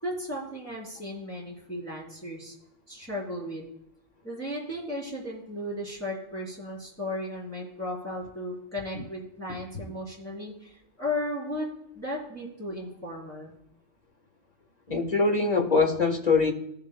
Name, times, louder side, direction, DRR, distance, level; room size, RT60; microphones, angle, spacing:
voice 1, 0.0-2.5 2.9-3.6 4.2-11.7 11.9-13.6, left 1 dB, 10° left, -7 dB, 4.0 m, -35 dB
voice 2, 14.9-16.5, left 4 dB, 35° left, 3 dB, 1.4 m, -23 dB
19.5 x 6.9 x 2.2 m, 0.80 s
omnidirectional pair, 1.2 m